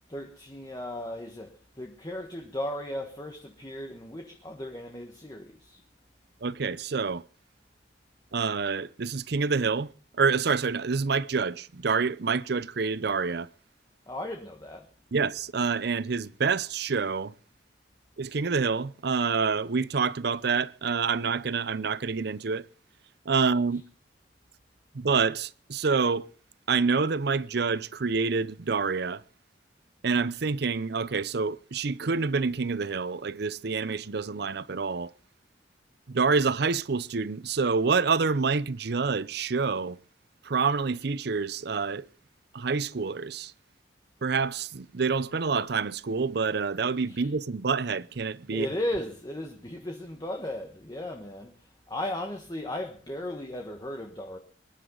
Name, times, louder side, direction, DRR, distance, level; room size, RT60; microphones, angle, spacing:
voice 1, 0.1-5.8 14.1-14.9 47.1-47.3 48.5-51.5 51.9-54.4, left 1 dB, 20° left, 1.5 m, -36 dB
voice 2, 6.4-7.2 8.3-9.9 10.2-13.5 15.1-17.3 18.2-22.6 23.3-23.8 24.9-26.3 26.7-29.2 30.0-35.1 36.1-40.0 40.4-42.1 42.5-43.5 44.2-48.7, right 5 dB, 60° right, 0.6 m, -27 dB
24.5 x 11.0 x 3.9 m
head